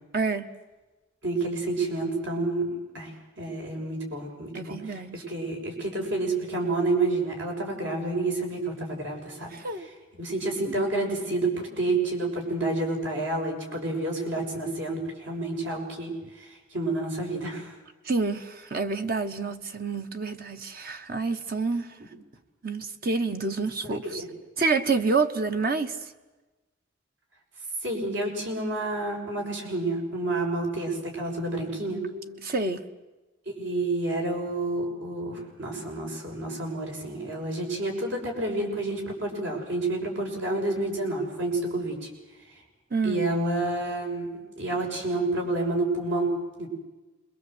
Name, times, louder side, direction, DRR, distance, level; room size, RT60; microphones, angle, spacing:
voice 1, 0.1-0.5 4.5-5.2 9.5-9.9 18.0-21.9 22.6-24.2 24.6-26.0 32.1-32.8 42.9-43.3, right 4 dB, 45° right, 7 dB, 1.2 m, -28 dB
voice 2, 1.2-3.1 3.4-9.5 10.2-17.7 23.9-24.2 27.8-32.0 33.5-42.1 43.0-46.7, right 2 dB, 70° right, 1 dB, 6.9 m, -29 dB
27.0 x 22.0 x 8.0 m, 1.1 s
head